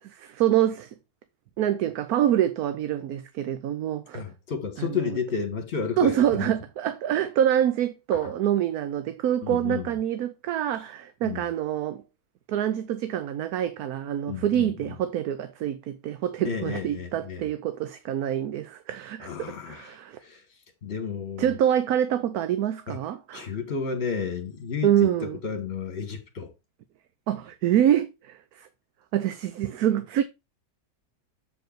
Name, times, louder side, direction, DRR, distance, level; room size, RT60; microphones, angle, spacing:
voice 1, 0.0-0.9 1.6-4.2 4.8-5.2 6.0-12.0 12.5-20.2 21.4-23.5 24.8-25.4 27.3-28.7 29.1-30.2, right 11 dB, 65° right, 1.1 m, -26 dB
voice 2, 4.1-6.5 8.1-8.3 9.4-9.9 11.2-11.4 14.3-14.7 16.4-17.5 19.2-20.4 20.8-21.5 22.9-23.0 23.3-25.1 25.4-26.5, left 6 dB, 40° left, 1.8 m, -32 dB
7.9 x 4.9 x 4.5 m
omnidirectional pair, 1.8 m